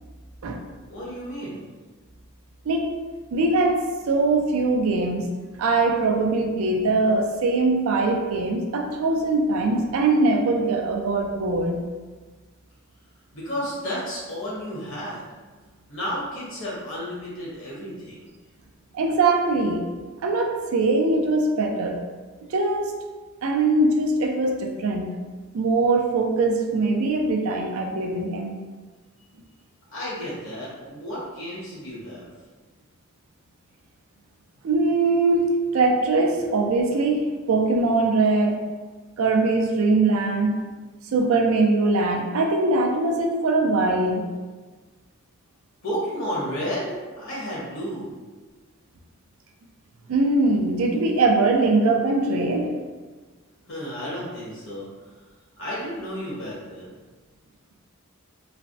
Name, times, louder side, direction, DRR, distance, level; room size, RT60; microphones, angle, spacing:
voice 1, 0.9-1.6 13.3-15.2 15.9-18.2 29.9-32.3 45.8-48.1 53.7-54.8 55.6-56.9, equal, 60° left, -7 dB, 1.2 m, -32 dB
voice 2, 3.3-3.8 4.1-5.3 5.6-11.8 18.9-19.8 20.2-22.0 22.5-22.9 23.4-25.0 25.5-28.5 34.6-38.6 39.2-40.6 41.1-44.3 50.1-52.7, right 3 dB, 70° right, 3 dB, 0.4 m, -22 dB
3.2 x 2.0 x 2.6 m, 1.3 s
head